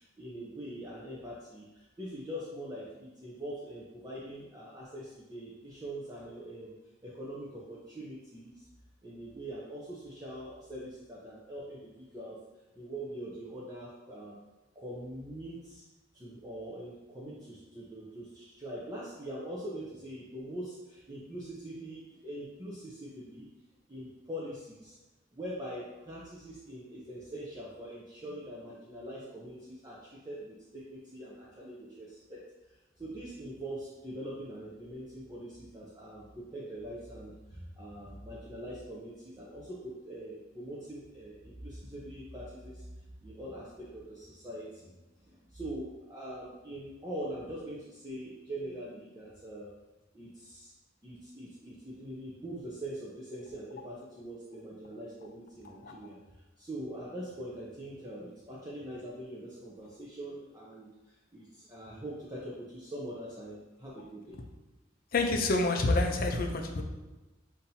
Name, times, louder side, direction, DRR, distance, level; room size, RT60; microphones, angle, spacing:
voice 1, 0.0-6.7 7.0-8.6 9.0-12.4 12.7-14.4 14.8-15.8 16.1-23.5 23.9-25.0 25.3-42.9 43.2-44.9 45.2-49.7 50.1-50.7 51.0-64.4, right 1 dB, 20° right, -6 dB, 0.6 m, -43 dB
voice 2, 65.1-66.8, left 2 dB, 50° left, 2 dB, 0.6 m, -27 dB
7.1 x 2.7 x 2.7 m, 1.1 s
head